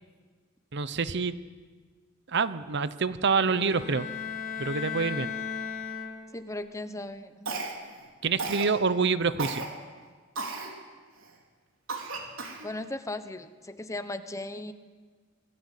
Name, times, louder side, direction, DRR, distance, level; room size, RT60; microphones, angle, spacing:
voice 1, 0.7-1.4 2.3-4.1 4.6-5.3 8.2-9.6, right 5 dB, 60° right, 14 dB, 0.8 m, -26 dB
sound 1, 3.3-6.6, left 6 dB, 40° left, 2.8 m, -36 dB
voice 2, 6.3-7.6 12.6-14.7, left 2 dB, 15° left, 10 dB, 1.0 m, -37 dB
Cough, 7.5-8.0 8.4-8.7 9.4-9.7 10.4-10.7 11.2-11.3 11.9-12.7, right 3 dB, 90° right, 3.6 m, -34 dB
25.0 x 17.5 x 8.4 m, 1.5 s
head